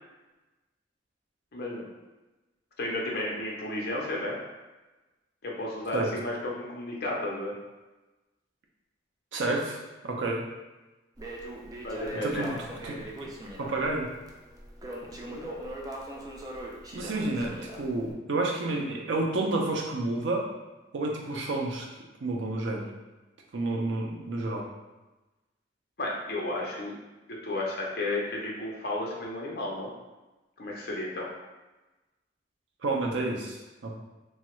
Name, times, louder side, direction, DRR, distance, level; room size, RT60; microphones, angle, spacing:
voice 1, 1.5-1.9 2.8-4.4 5.4-7.6 11.8-12.5 15.1-15.5 26.0-26.9 27.3-29.9 30.6-31.3, left 1 dB, 55° left, -3 dB, 0.6 m, -33 dB
voice 2, 9.3-10.4 12.2-12.5 12.8-12.9 13.6-14.1 16.9-20.5 20.9-21.9 22.2-22.9 23.5-24.7 32.8-33.9, right 2 dB, 85° right, 0 dB, 0.5 m, -30 dB
Crackle, 11.2-18.1, right 1 dB, 20° right, 0.3 m, -41 dB
3.1 x 2.3 x 3.0 m, 1.1 s
head